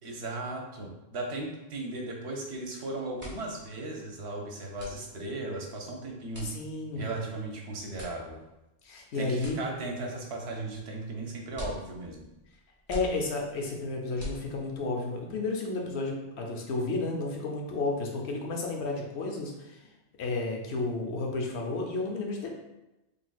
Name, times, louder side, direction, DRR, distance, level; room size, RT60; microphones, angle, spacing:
voice 1, 0.0-6.5 6.9-8.4 9.1-12.3, right 2 dB, 80° right, 1 dB, 1.0 m, -36 dB
sound 1, 3.1-14.9, equal, 10° right, 1.2 m, -46 dB
voice 2, 6.4-7.1 8.8-9.6 12.9-19.8 20.2-22.5, left 3 dB, 80° left, 1 dB, 1.0 m, -32 dB
3.9 x 3.3 x 2.3 m, 0.96 s
omnidirectional pair, 1.1 m